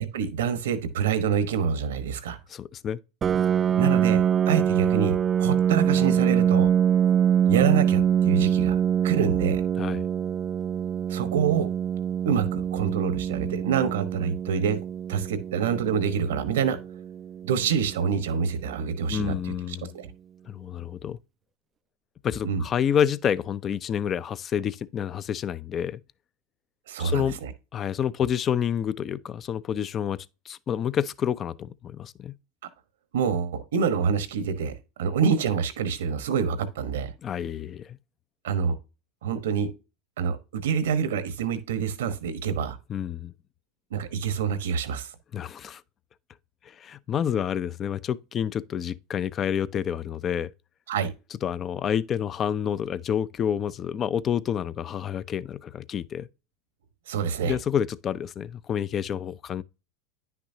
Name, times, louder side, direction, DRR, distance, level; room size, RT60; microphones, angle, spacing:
voice 1, 0.0-2.4 3.8-6.7 7.5-9.6 11.1-11.7 12.2-14.8 15.1-16.8 17.4-20.1 22.4-22.6 26.9-27.5 33.1-34.7 35.0-37.1 38.4-38.7 39.2-39.7 40.2-42.8 43.9-45.1 50.9-51.1 57.1-57.6, right 6 dB, 80° right, 1.1 m, -26 dB
voice 2, 2.5-3.0 9.8-10.0 19.1-19.9 20.5-21.2 22.2-26.0 27.0-27.4 27.7-30.2 30.5-32.3 37.2-38.0 42.9-43.3 45.3-45.8 46.6-50.5 51.4-56.3 57.4-59.6, left 8 dB, 35° left, 0.5 m, -28 dB
Piano, 3.2-18.6, right 9 dB, 30° right, 0.4 m, -24 dB
10.0 x 6.0 x 2.7 m
hypercardioid pair, 100°, 0 cm